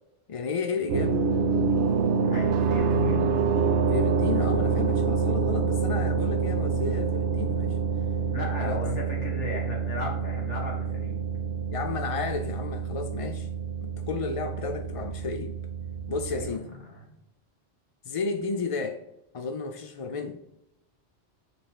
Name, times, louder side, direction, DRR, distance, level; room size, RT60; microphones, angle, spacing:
voice 1, 0.3-1.2 3.9-7.8 8.6-8.8 11.7-13.5 13.8-15.6 16.1-16.7 18.1-19.0 19.3-20.4, left 4 dB, 60° left, 8 dB, 0.3 m, -32 dB
sound 1, 0.9-16.5, right 5 dB, 75° right, 0.9 m, -27 dB
voice 2, 2.3-3.3 8.3-11.2 14.5-14.7 16.3-17.1, left 2 dB, 80° left, -1 dB, 2.3 m, -36 dB
6.6 x 4.4 x 4.6 m, 0.85 s
omnidirectional pair, 1.2 m